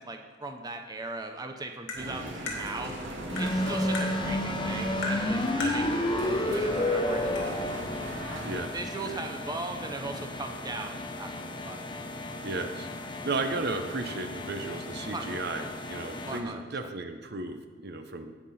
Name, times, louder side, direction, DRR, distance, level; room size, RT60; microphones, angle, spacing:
voice 1, 0.0-2.9 3.4-7.8 8.7-11.9 15.1-15.3 16.3-16.9, right 2 dB, 20° right, 4 dB, 0.7 m, -39 dB
Tap, 1.9-2.0 2.5-2.6 3.4-3.5 3.9-4.1 5.0-5.2 5.6-5.8 6.8-6.9 7.4-7.5, left 2 dB, 80° left, 2.6 m, -34 dB
sound 1, 1.9-8.6, right 1 dB, 75° right, 2.0 m, -39 dB
sound 2, 3.3-16.4, left 1 dB, 25° left, 0.8 m, -32 dB
voice 2, 8.4-9.2 12.4-12.9 13.2-18.3, right 3 dB, 60° right, 7 dB, 0.8 m, -34 dB
17.5 x 6.0 x 4.2 m, 1.4 s
head